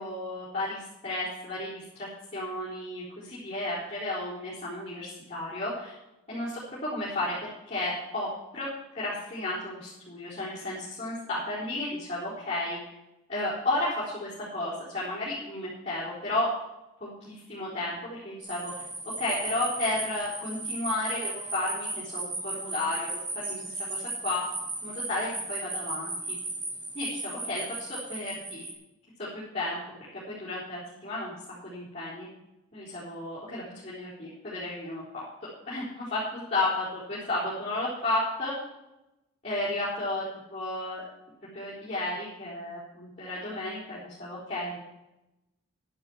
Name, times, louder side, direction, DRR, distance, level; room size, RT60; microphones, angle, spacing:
voice 1, 0.0-5.9 6.3-8.7 8.9-12.9 13.3-16.5 17.0-18.8 19.2-24.4 24.8-26.4 26.9-28.6 29.2-29.3 29.5-29.8 30.3-31.3 31.6-32.3 32.7-38.5 39.4-40.2 40.5-41.0 41.5-44.8, left 2 dB, 30° left, -11 dB, 4.3 m, -33 dB
sound 1, 18.4-28.7, right 2 dB, 20° right, 2.2 m, -36 dB
12.0 x 10.5 x 4.7 m, 0.93 s
head